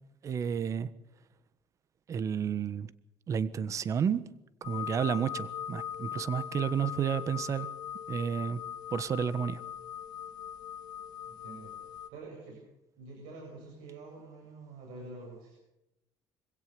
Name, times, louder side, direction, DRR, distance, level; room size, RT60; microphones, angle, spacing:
voice 1, 0.2-0.9 2.1-2.9 3.3-4.3 4.6-7.7 8.1-8.6 8.9-9.6, right 7 dB, 40° right, 15 dB, 1.3 m, -31 dB
sound 1, 4.6-12.1, left 9 dB, 60° left, 2.4 m, -40 dB
voice 2, 11.3-12.6 13.0-15.5, right 3 dB, 90° right, 0 dB, 7.9 m, -47 dB
25.5 x 17.0 x 6.8 m, 0.90 s
cardioid pair, 125°, 8 cm